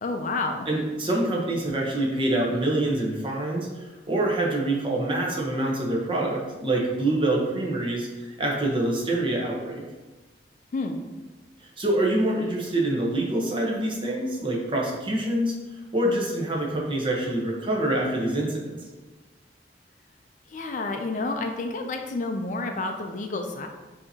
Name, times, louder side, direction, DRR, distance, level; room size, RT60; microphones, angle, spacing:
voice 1, 0.0-0.7 10.7-11.0 20.5-23.7, left 3 dB, 45° left, 4 dB, 0.4 m, -29 dB
voice 2, 0.7-9.8 11.6-15.5 15.9-18.8, right 1 dB, 30° right, -2 dB, 0.9 m, -26 dB
6.4 x 2.8 x 2.8 m, 1.2 s
head